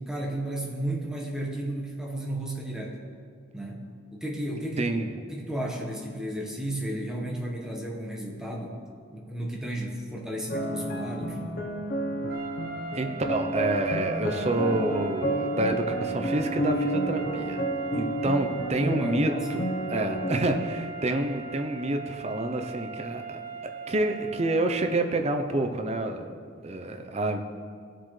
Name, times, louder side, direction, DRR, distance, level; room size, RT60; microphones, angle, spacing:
voice 1, 0.0-3.0 3.5-4.9 5.3-8.8 9.1-11.6 18.8-19.6, right 1 dB, 5° right, -2 dB, 1.3 m, -33 dB
voice 2, 4.8-5.1 12.9-17.6 17.9-19.6 19.9-23.4 23.9-26.3 26.6-27.4, right 2 dB, 30° right, 5 dB, 0.7 m, -28 dB
sound 1, 10.5-20.8, right 1 dB, 45° left, 0.9 m, -31 dB
sound 2, 12.3-25.1, right 5 dB, 50° right, 1.0 m, -39 dB
17.0 x 7.7 x 3.3 m, 2.2 s
head